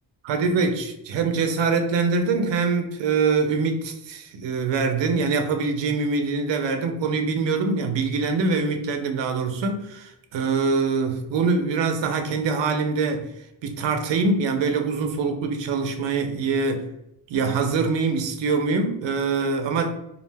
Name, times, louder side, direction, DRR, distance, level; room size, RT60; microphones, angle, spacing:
voice 1, 0.2-13.3 13.6-16.9 17.3-19.9, right 4 dB, 90° right, 5 dB, 0.5 m, -24 dB
2.4 x 2.1 x 3.2 m, 0.84 s
wide cardioid pair, 120°, 43 cm